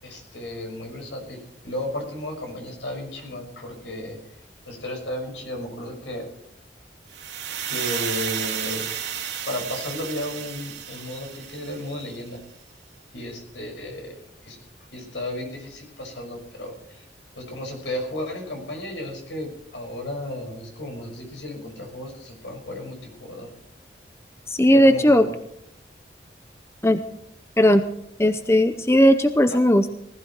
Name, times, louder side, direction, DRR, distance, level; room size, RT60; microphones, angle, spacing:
voice 1, 0.0-4.2 4.7-6.3 7.7-8.8 9.5-12.4 13.1-14.1 14.4-14.6 14.9-17.0 17.4-23.5 24.7-25.3 29.5-29.6, left 1 dB, 80° left, 2 dB, 6.1 m, -34 dB
sound 1, 7.1-12.1, right 9 dB, 80° right, 2.5 m, -32 dB
voice 2, 24.5-25.2 26.8-27.0 27.6-27.8 28.2-29.9, equal, 15° left, 9 dB, 0.6 m, -17 dB
19.5 x 14.5 x 4.6 m, 0.72 s
head